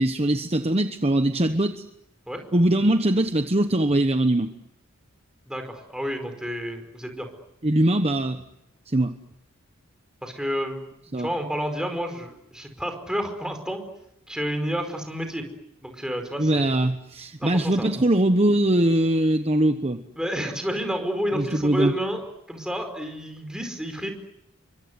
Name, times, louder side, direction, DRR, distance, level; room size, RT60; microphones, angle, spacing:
voice 1, 0.0-1.8 2.5-4.5 7.6-8.4 8.9-9.1 11.1-11.3 16.4-20.0 21.3-21.9, right 1 dB, 30° right, 7 dB, 1.1 m, -21 dB
voice 2, 5.5-7.3 10.2-10.8 11.2-13.8 14.3-15.4 15.8-16.8 17.4-17.9 20.2-22.2 22.5-24.1, equal, 5° right, 5 dB, 4.9 m, -30 dB
30.0 x 24.5 x 8.1 m, 0.82 s
head